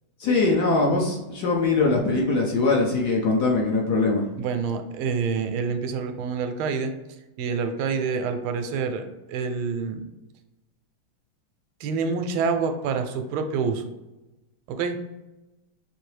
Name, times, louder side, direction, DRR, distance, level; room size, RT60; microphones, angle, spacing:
voice 1, 0.2-4.2, left 3 dB, 65° left, -1 dB, 1.1 m, -22 dB
voice 2, 4.4-6.9 7.4-10.0 11.8-13.8 14.7-15.0, right 5 dB, 85° right, 7 dB, 1.4 m, -27 dB
5.8 x 2.7 x 3.2 m, 1.0 s
omnidirectional pair, 2.3 m